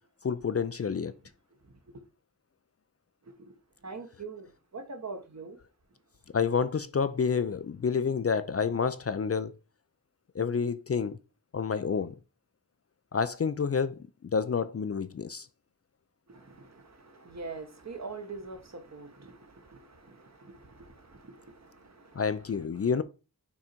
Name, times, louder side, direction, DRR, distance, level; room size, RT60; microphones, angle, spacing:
voice 1, 0.2-1.1 6.3-9.5 10.4-11.2 11.5-12.1 13.1-14.0 14.3-15.5 22.2-23.0, left 6 dB, 40° left, 0.4 m, -29 dB
voice 2, 3.8-5.6 16.3-22.9, right 4 dB, 45° right, 1.2 m, -44 dB
6.1 x 3.9 x 4.4 m
wide cardioid pair, 95°, 36 cm